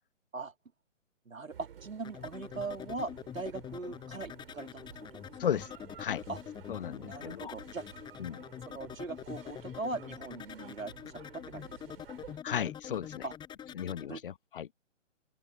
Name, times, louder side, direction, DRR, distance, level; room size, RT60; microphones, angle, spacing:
voice 1, 1.3-5.1 5.5-5.6 6.3-6.4 7.0-7.8 8.7-10.9 11.3-12.0 13.2-13.3 14.1-14.2, right 3 dB, 90° right, 2.3 m, -40 dB
sound 1, 1.5-12.4, right 8 dB, 50° right, 6.9 m, -53 dB
sound 2, 2.0-14.1, left 9 dB, 10° left, 7.1 m, -45 dB
voice 2, 6.7-7.6 8.2-8.4 12.4-13.2 13.8-14.7, left 9 dB, 45° left, 1.0 m, -35 dB
figure-of-eight pair, 140°, 39 cm